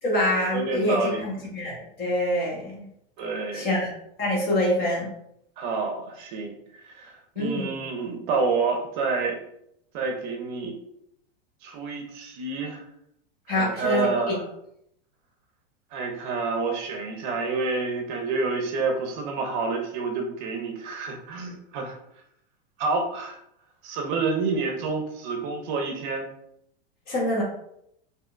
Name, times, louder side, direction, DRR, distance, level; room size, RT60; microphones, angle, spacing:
voice 1, 0.0-2.8 3.5-3.9 4.2-5.1 7.4-7.7 13.5-14.4 27.1-27.4, left 1 dB, 30° left, -3 dB, 1.2 m, -25 dB
voice 2, 0.5-1.3 3.2-3.8 5.6-9.4 9.9-10.7 11.6-12.8 13.5-14.4 15.9-22.0 22.8-23.4 23.8-26.3, right 4 dB, 50° right, 3 dB, 0.6 m, -28 dB
3.4 x 2.7 x 2.5 m, 0.75 s
supercardioid pair, 150°, 30 cm